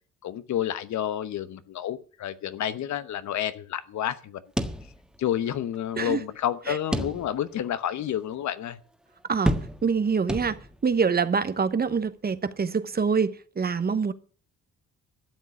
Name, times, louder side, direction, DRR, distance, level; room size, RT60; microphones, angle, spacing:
voice 1, 0.2-4.4 5.2-8.8, left 11 dB, 70° left, 1.1 m, -30 dB
sound 1, 4.6-5.4 5.7-5.8 6.9-7.6 8.1-8.2 9.5-10.0 10.3-10.9, equal, 5° right, 1.6 m, -29 dB
voice 2, 9.8-10.6 10.8-14.1, right 5 dB, 30° right, 1.0 m, -25 dB
12.5 x 7.4 x 8.2 m
cardioid pair, 90°, 30 cm